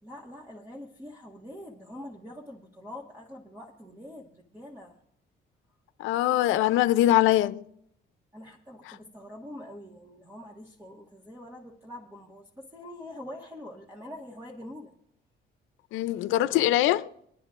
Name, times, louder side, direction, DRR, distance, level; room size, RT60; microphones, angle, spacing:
voice 1, 0.0-5.0 8.3-14.9, left 1 dB, 10° right, 1.5 m, -44 dB
voice 2, 6.0-7.6 15.9-17.1, left 14 dB, 90° left, 0.5 m, -23 dB
27.5 x 10.0 x 2.5 m
cardioid pair, 90°, 20 cm